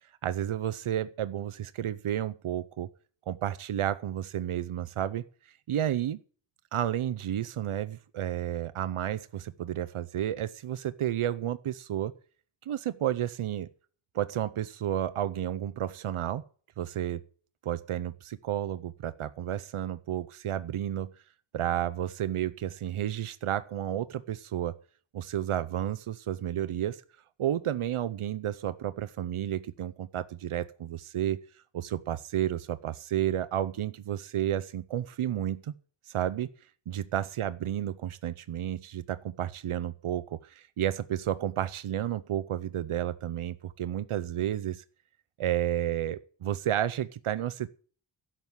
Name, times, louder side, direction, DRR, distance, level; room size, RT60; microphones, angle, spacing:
voice 1, 0.2-2.9 3.3-6.2 6.7-12.1 12.7-13.7 14.1-16.4 16.8-17.2 17.6-21.1 21.5-24.8 25.1-27.0 27.4-31.4 31.7-35.7 36.1-36.5 36.9-44.8 45.4-47.7, right 11 dB, 90° right, 14 dB, 0.7 m, -31 dB
12.0 x 7.3 x 8.0 m, 0.43 s
wide cardioid pair, 110°, 49 cm